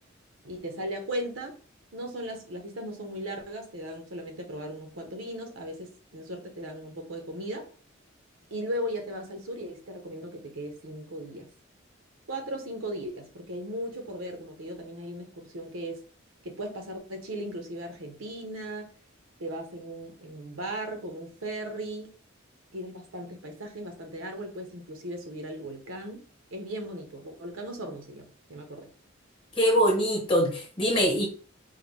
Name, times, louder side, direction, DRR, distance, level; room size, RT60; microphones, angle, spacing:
voice 1, 0.4-1.6 1.9-7.7 8.5-11.5 12.3-16.0 16.4-18.9 19.4-22.1 22.7-26.3 26.5-28.9, right 1 dB, 80° right, 0.9 m, -37 dB
voice 2, 29.6-31.2, equal, 25° left, 1.0 m, -23 dB
3.7 x 2.1 x 3.2 m
head